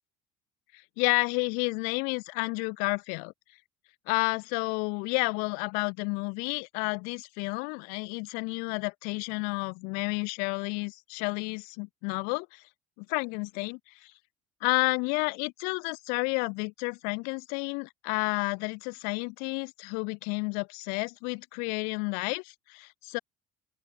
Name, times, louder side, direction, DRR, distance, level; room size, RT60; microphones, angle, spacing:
voice 1, 1.0-3.3 4.1-12.6 13.0-14.1 14.6-23.2, left 35 dB, 75° left, 0.7 m, -31 dB
open air
supercardioid pair, 85°, 15 cm